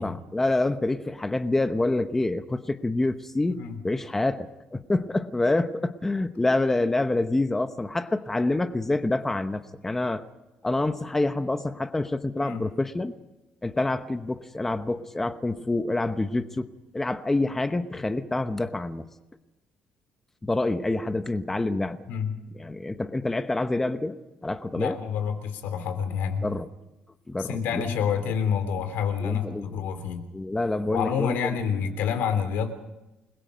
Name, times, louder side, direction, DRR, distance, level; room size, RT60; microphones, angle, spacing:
voice 1, 0.0-10.2 10.6-13.1 13.6-16.7 16.9-19.1 20.4-22.0 22.6-25.0 26.4-26.7 27.3-27.8 29.2-29.8 30.3-31.6, left 2 dB, 10° left, 9 dB, 0.9 m, -27 dB
voice 2, 24.7-26.5 27.4-30.2 30.9-32.7, left 7 dB, 80° left, 9 dB, 3.2 m, -28 dB
29.0 x 21.5 x 5.2 m, 1.0 s
cardioid pair, 160°, 3 cm